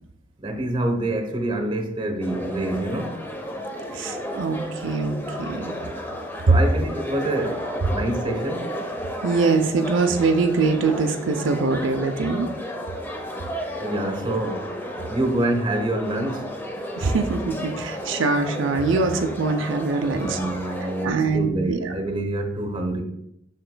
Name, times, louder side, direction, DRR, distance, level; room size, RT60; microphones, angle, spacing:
voice 1, 0.4-3.1 6.5-8.7 13.8-14.7 15.1-16.5 20.0-23.0, right 1 dB, 25° right, 0.9 m, -26 dB
sound 1, 2.2-21.1, equal, 10° left, 0.7 m, -33 dB
voice 2, 3.9-5.7 9.2-12.5 17.0-20.4 21.0-21.9, right 4 dB, 75° right, 0.5 m, -23 dB
7.7 x 5.9 x 2.2 m
head